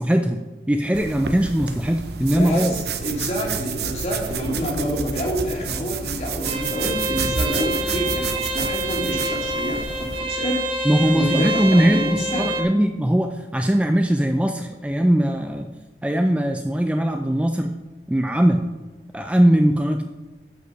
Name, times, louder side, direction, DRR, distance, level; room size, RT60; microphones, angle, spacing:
voice 1, 0.0-2.7 10.8-15.7 16.0-17.7 18.1-18.6 19.1-20.0, equal, 5° right, 5 dB, 0.4 m, -20 dB
sound 1, 0.9-10.2, right 5 dB, 65° right, 0.8 m, -30 dB
voice 2, 2.3-10.6 11.1-12.7, equal, 35° left, -1 dB, 2.4 m, -28 dB
sound 2, 4.3-12.6, right 1 dB, 30° right, 0.9 m, -28 dB
12.5 x 5.5 x 5.4 m, 1.2 s
head